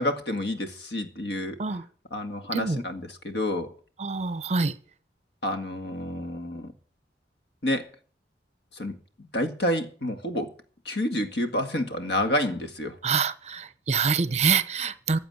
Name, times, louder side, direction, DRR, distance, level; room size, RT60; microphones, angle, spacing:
voice 1, 0.0-1.6 2.1-3.7 5.4-6.7 7.6-7.8 8.7-9.0 9.3-10.5 10.9-13.0, left 1 dB, 70° left, 2.0 m, -29 dB
voice 2, 2.5-2.8 4.0-4.7 13.0-15.2, right 5 dB, 40° right, 0.8 m, -25 dB
15.0 x 7.7 x 8.0 m
head